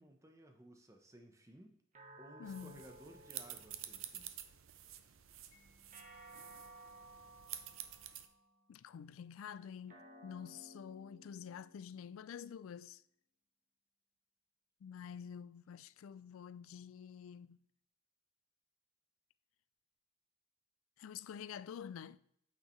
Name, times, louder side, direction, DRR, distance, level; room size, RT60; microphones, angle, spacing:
voice 1, 0.0-1.8 2.2-4.3, right 1 dB, 15° right, 0.9 m, -58 dB
sound 1, 1.9-4.5 5.9-8.5 9.9-12.5, right 1 dB, 35° right, 1.4 m, -58 dB
voice 2, 2.4-2.8 8.7-13.0 14.8-17.6 21.0-22.2, left 7 dB, 75° left, 0.3 m, -48 dB
sound 2, 2.4-8.3, right 11 dB, 75° right, 0.6 m, -50 dB
Mallet percussion, 5.5-12.3, left 3 dB, 35° left, 1.5 m, -77 dB
8.9 x 6.4 x 3.2 m
head